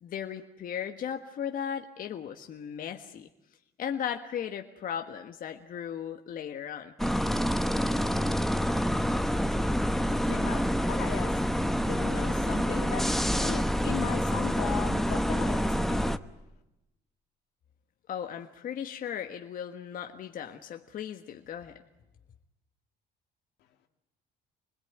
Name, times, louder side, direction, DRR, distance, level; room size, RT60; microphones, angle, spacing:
voice 1, 0.0-3.3 3.8-6.9 18.1-21.8, left 8 dB, 55° left, 5 dB, 1.5 m, -36 dB
sound 1, 7.0-16.2, equal, ahead, 0.9 m, -27 dB
voice 2, 10.1-11.4 11.9-13.0 13.4-16.1, left 10 dB, 85° left, 5 dB, 2.6 m, -38 dB
26.5 x 21.0 x 9.4 m, 0.93 s
cardioid pair, 110°, 17 cm